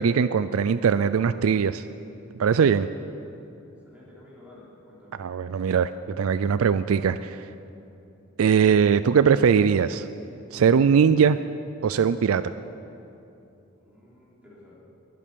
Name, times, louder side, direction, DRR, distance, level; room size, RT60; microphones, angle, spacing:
voice 1, 0.0-1.8 2.4-2.9 5.2-5.9 6.2-7.4 8.4-10.1 10.5-11.4 11.8-12.4, right 6 dB, 90° right, 13 dB, 0.4 m, -20 dB
voice 2, 2.9-3.2 3.6-5.2 13.8-14.7, left 1 dB, 5° right, -7 dB, 3.6 m, -52 dB
21.5 x 8.6 x 6.9 m, 2.8 s
head